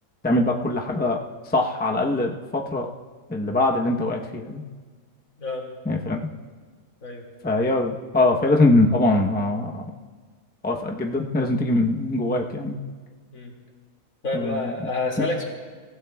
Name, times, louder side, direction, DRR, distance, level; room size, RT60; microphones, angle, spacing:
voice 1, 0.2-1.2 1.5-2.9 3.3-4.6 5.9-6.2 7.4-9.8 10.6-12.8 14.3-14.6 15.2-15.3, left 2 dB, 10° left, 1 dB, 0.6 m, -22 dB
voice 2, 14.2-15.4, left 2 dB, 70° left, -1 dB, 2.8 m, -28 dB
29.5 x 16.0 x 2.3 m, 1.5 s
omnidirectional pair, 1.5 m